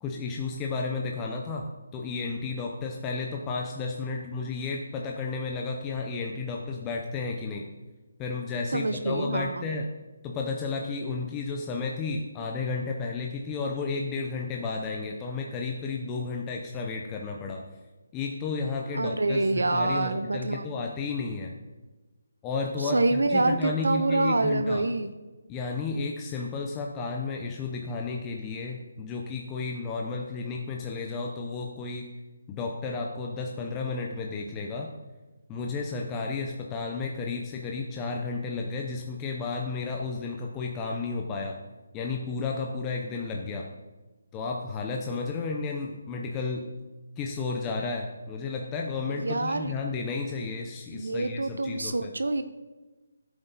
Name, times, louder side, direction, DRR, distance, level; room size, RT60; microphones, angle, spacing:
voice 1, 0.0-1.7 1.9-7.6 8.2-9.9 10.2-17.6 18.1-21.5 22.4-24.8 25.5-32.1 32.5-34.9 35.5-41.6 41.9-43.7 44.3-46.6 47.2-52.1, left 4 dB, 15° left, 0 dB, 0.7 m, -32 dB
voice 2, 8.7-9.7 18.9-20.6 22.8-25.1 49.1-49.7 50.9-52.4, right 2 dB, 85° right, 10 dB, 0.7 m, -26 dB
11.0 x 7.9 x 4.1 m, 1.2 s
figure-of-eight pair, 165°, 0 cm